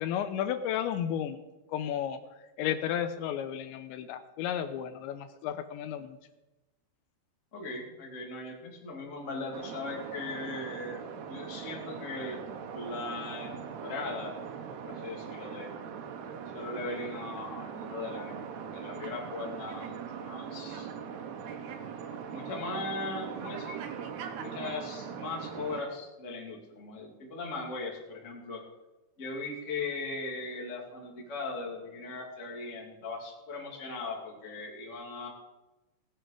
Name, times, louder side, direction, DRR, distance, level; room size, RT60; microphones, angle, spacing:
voice 1, 0.0-1.4 1.7-2.2 2.6-6.2, left 9 dB, 80° left, 9 dB, 2.9 m, -33 dB
voice 2, 7.5-11.0 11.3-12.4 12.7-14.3 14.8-15.7 16.5-18.4 18.7-20.9 22.1-23.8 24.4-28.6 29.2-35.3, left 3 dB, 30° left, -1 dB, 1.5 m, -39 dB
sound 1, 9.5-25.8, right 7 dB, 70° right, 2.9 m, -41 dB
18.5 x 7.9 x 4.9 m, 1.1 s
omnidirectional pair, 5.3 m